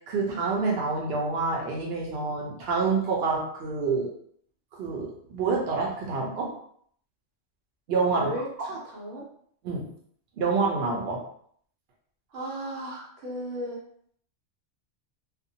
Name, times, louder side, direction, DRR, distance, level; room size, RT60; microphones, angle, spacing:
voice 1, 0.0-4.1 4.7-6.5 7.9-8.3 9.6-9.9 10.4-11.2, right 4 dB, 65° right, -2 dB, 0.9 m, -27 dB
voice 2, 8.1-9.3 12.3-13.8, right 1 dB, 90° right, -3 dB, 1.1 m, -35 dB
2.5 x 2.1 x 2.7 m, 0.62 s
omnidirectional pair, 1.2 m